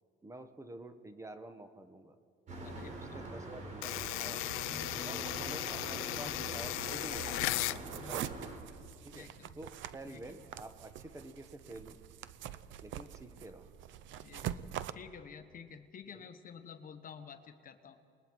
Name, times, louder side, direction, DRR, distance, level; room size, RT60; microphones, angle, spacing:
voice 1, 0.2-2.1 2.8-4.4 5.0-7.3 8.0-8.5 9.0-9.3 9.6-12.0 12.8-13.7 14.4-14.6 16.1-16.3, right 1 dB, 15° right, 8 dB, 1.2 m, -49 dB
sound 1, 2.5-8.6, right 2 dB, 35° right, 4.0 m, -44 dB
voice 2, 2.6-3.2 4.9-6.4 6.7-6.8 8.0-8.2 9.1-9.6 10.0-10.4 13.4-13.5 14.2-18.0, left 6 dB, 40° left, 9 dB, 1.2 m, -52 dB
sound 2, 3.8-7.8, left 19 dB, 85° left, 0.5 m, -36 dB
sound 3, 6.9-14.9, right 11 dB, 70° right, 0.7 m, -44 dB
29.0 x 21.0 x 4.7 m, 2.3 s
cardioid pair, 125°, 21 cm